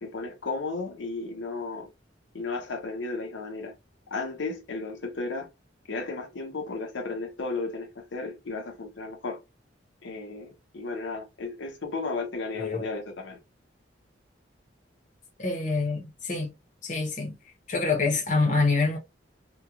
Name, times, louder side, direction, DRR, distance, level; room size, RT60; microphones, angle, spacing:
voice 1, 0.0-1.9 2.3-3.7 4.1-5.5 5.9-9.4 10.0-13.4, left 3 dB, 80° left, 0.7 m, -34 dB
voice 2, 12.5-12.9 15.4-16.5 16.8-17.4 17.7-19.0, left 3 dB, 40° left, 0.8 m, -26 dB
2.8 x 2.3 x 2.3 m
head